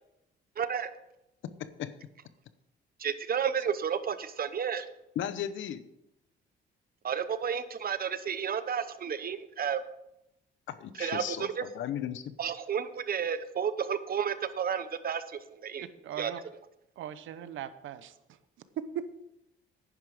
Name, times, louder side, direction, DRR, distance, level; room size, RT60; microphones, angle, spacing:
voice 1, 0.6-0.9 3.0-4.9 7.0-9.8 11.0-11.7 12.4-15.9 16.2-16.3, right 7 dB, 50° right, 12 dB, 1.0 m, -32 dB
voice 2, 1.6-1.9 5.2-5.8 10.7-12.4, left 10 dB, 75° left, 13 dB, 0.9 m, -36 dB
voice 3, 15.8-16.4 17.0-18.2 18.8-19.1, right 9 dB, 80° right, 13 dB, 0.9 m, -38 dB
11.0 x 10.0 x 5.0 m, 0.85 s
cardioid pair, 90°, 20 cm